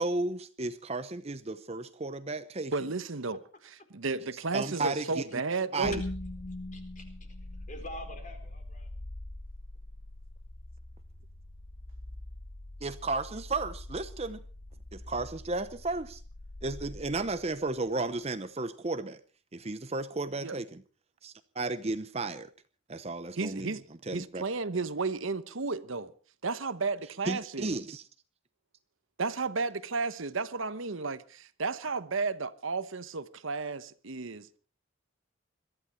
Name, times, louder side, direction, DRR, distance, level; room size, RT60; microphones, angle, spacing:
voice 1, 0.0-2.7 4.5-5.3 5.7-5.9 12.8-14.4 14.9-16.2 16.6-19.2 19.5-20.8 21.2-22.5 22.9-24.4 27.2-28.1, right 2 dB, 30° right, 0.7 m, -34 dB
voice 2, 2.7-3.4 3.9-6.0 20.4-20.6 23.4-23.8 24.1-26.1 26.4-27.8 29.2-34.5, right 4 dB, 65° right, 1.0 m, -33 dB
voice 3, 4.7-5.1 6.7-7.3 7.6-8.9, left 1 dB, 35° left, 4.2 m, -46 dB
sound 1, 5.8-17.9, left 1 dB, 60° left, 1.3 m, -43 dB
22.5 x 14.0 x 4.4 m
head